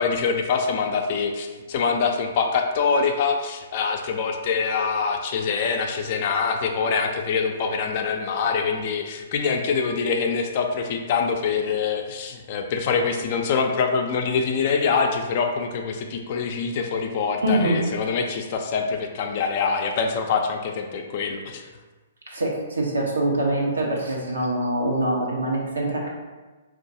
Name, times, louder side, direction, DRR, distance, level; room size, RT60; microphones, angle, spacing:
voice 1, 0.0-21.6, left 5 dB, 45° left, 3 dB, 0.4 m, -24 dB
voice 2, 17.4-17.8 22.3-26.1, right 1 dB, 85° right, -2 dB, 0.9 m, -24 dB
4.5 x 2.4 x 2.7 m, 1.3 s
hypercardioid pair, 130°, 0 cm